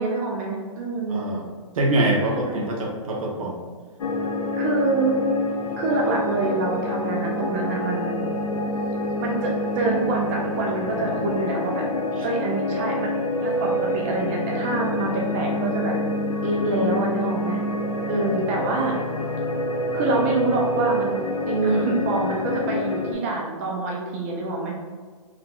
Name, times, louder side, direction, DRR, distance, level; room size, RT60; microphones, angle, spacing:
voice 1, 0.0-1.3 2.3-2.7 4.6-5.1 5.8-8.2 9.2-11.9 12.2-13.1 13.4-16.0 16.4-17.6 18.1-18.9 19.9-21.2 21.5-24.7, right 3 dB, 25° right, -1 dB, 0.4 m, -26 dB
voice 2, 1.1-1.4 1.7-3.6 12.2-12.3, right 1 dB, 70° right, -1 dB, 0.9 m, -24 dB
sound 1, 4.0-23.1, left 1 dB, 80° left, 0.6 m, -27 dB
3.7 x 3.0 x 2.2 m, 1.5 s
hypercardioid pair, 150°, 18 cm